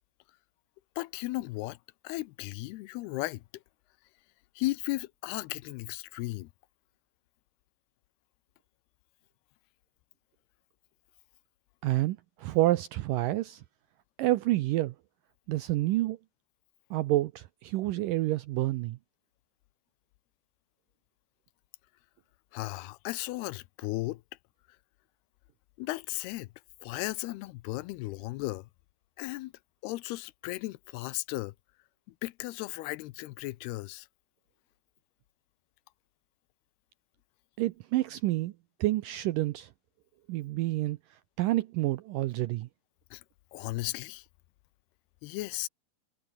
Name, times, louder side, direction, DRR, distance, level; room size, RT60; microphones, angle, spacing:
voice 1, 1.0-1.8 2.0-3.6 4.6-6.5 22.5-24.2 25.8-26.5 26.8-28.7 29.2-29.5 29.8-31.5 32.1-34.1 43.1-43.2 43.5-44.3 45.2-45.7, left 19 dB, 85° left, 2.7 m, -35 dB
voice 2, 11.8-13.6 14.2-14.9 15.5-16.2 16.9-19.0 37.6-38.5 38.8-39.7 40.3-41.0 41.4-42.7, right 16 dB, 80° right, 2.0 m, -28 dB
omnidirectional pair, 4.6 m